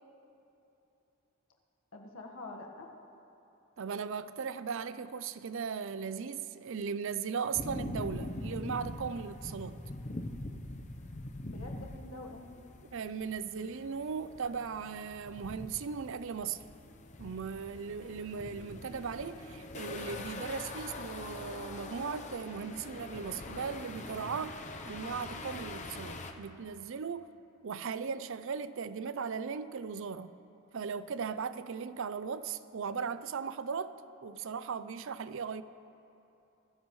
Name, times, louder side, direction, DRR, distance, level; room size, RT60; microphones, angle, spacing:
voice 1, 1.9-2.9 11.4-12.6, left 2 dB, 75° left, 1.5 m, -46 dB
voice 2, 3.8-9.8 12.9-16.6 17.2-24.6 24.8-27.3 27.6-30.3 30.7-34.0 34.2-35.6, right 6 dB, 60° right, 0.5 m, -37 dB
sound 1, 7.5-26.3, left 2 dB, 35° left, 0.8 m, -43 dB
24.0 x 13.5 x 3.2 m
head